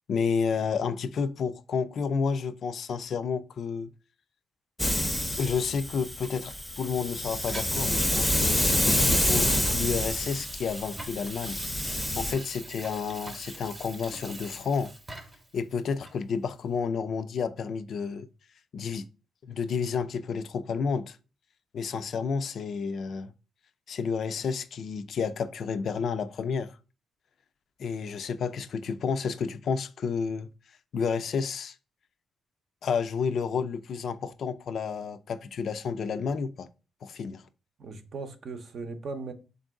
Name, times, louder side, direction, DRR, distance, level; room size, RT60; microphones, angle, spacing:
voice 1, 0.1-3.9 5.4-11.6 12.2-14.9 15.5-18.3 18.7-19.1 19.4-21.2 21.7-23.3 23.9-26.8 27.8-30.5 30.9-31.8 32.8-36.7 37.0-37.4, left 5 dB, 60° left, 0.3 m, -30 dB
Hiss, 4.8-12.3, left 1 dB, 10° left, 0.6 m, -27 dB
Water tap faucet / Sink (filling or washing), 6.2-15.5 16.0-16.2, right 2 dB, 25° right, 0.8 m, -44 dB
voice 2, 37.8-39.3, right 4 dB, 55° right, 0.6 m, -38 dB
3.7 x 2.6 x 3.5 m
cardioid pair, 95°, 0 cm